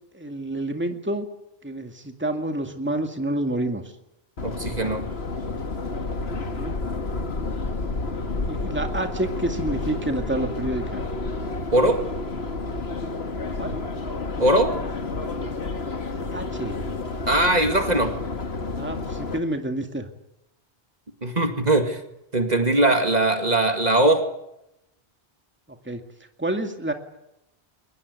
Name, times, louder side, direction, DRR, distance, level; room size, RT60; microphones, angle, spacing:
voice 1, 0.1-1.3 1.6-3.8 6.5-6.8 8.5-11.0 13.6-13.8 16.1-16.8 18.8-20.1 25.9-26.0 26.4-26.9, right 1 dB, 10° right, 5 dB, 2.2 m, -28 dB
Subway metro underground, 4.4-19.4, left 3 dB, 75° left, 2.1 m, -30 dB
voice 2, 4.4-5.1 11.7-12.0 14.4-14.7 17.3-18.1 21.2-22.0 22.3-24.3, right 1 dB, 40° right, 6 dB, 2.2 m, -20 dB
23.5 x 20.5 x 9.6 m, 0.85 s
omnidirectional pair, 1.1 m